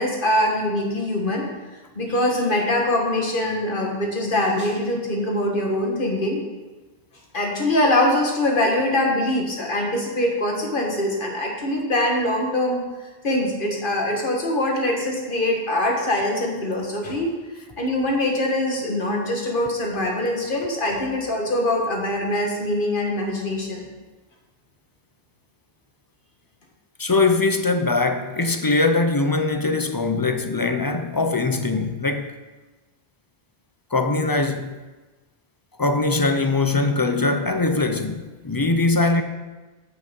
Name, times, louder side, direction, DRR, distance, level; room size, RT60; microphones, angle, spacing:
voice 1, 0.0-1.5 2.0-6.4 7.3-12.8 13.2-17.3 17.8-23.9, left 1 dB, 55° left, 1.9 m, -23 dB
voice 2, 27.0-32.3 33.9-34.8 35.8-39.2, left 3 dB, 25° left, 0.5 m, -21 dB
8.7 x 7.9 x 5.3 m
omnidirectional pair, 1.1 m